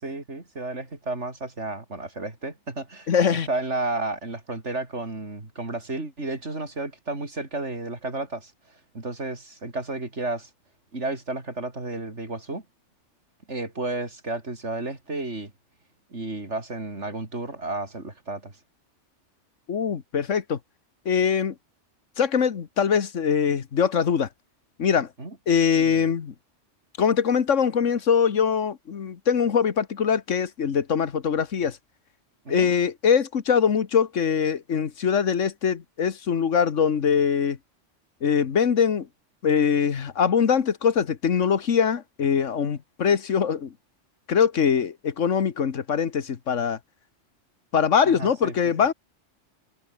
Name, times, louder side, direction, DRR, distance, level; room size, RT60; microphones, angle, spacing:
voice 1, 0.0-8.5 8.9-10.5 10.9-12.6 13.5-15.5 16.1-18.5 25.2-25.4 25.7-26.0 32.4-32.7 48.0-48.5, right 2 dB, 70° right, 4.5 m, -32 dB
voice 2, 3.1-3.5 19.7-20.6 21.0-21.5 22.2-24.3 24.8-25.1 25.5-26.3 27.0-31.8 32.5-37.6 38.2-39.1 39.4-43.7 44.3-46.8 47.7-48.9, left 7 dB, 85° left, 1.7 m, -22 dB
omnidirectional pair, 1.2 m